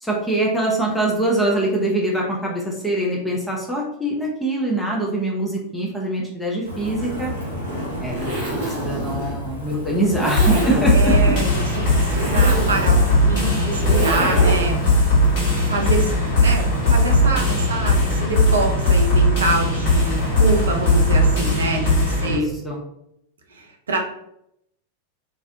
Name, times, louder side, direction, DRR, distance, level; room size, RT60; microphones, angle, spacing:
voice 1, 0.0-7.3 8.0-8.3 8.6-11.4 22.2-22.8, right 1 dB, 5° left, -4 dB, 0.5 m, -23 dB
Wind, 6.6-21.4, equal, 70° left, 0.8 m, -32 dB
Zipper (clothing), 6.9-14.8, right 1 dB, 55° right, 0.9 m, -28 dB
sound 1, 10.4-22.4, left 1 dB, 50° left, 1.1 m, -18 dB
voice 2, 10.9-14.8 15.6-16.1 16.4-22.5 23.5-24.0, right 2 dB, 70° right, 2 dB, 0.5 m, -26 dB
2.4 x 2.0 x 2.6 m, 0.78 s
figure-of-eight pair, 90°, 0 cm